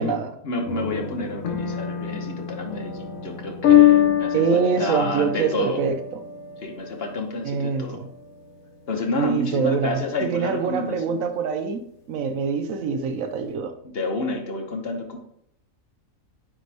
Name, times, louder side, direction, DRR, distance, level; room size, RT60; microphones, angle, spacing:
voice 1, 0.4-5.8 6.6-8.0 8.9-11.2 13.8-15.2, left 2 dB, 50° left, 3 dB, 1.0 m, -29 dB
sound 1, 0.7-9.7, left 11 dB, 80° left, 1.2 m, -24 dB
voice 2, 4.3-6.0 7.4-8.1 9.2-11.8 12.1-13.7, right 6 dB, 80° right, 8 dB, 1.1 m, -24 dB
9.2 x 3.4 x 3.3 m, 0.69 s
omnidirectional pair, 1.4 m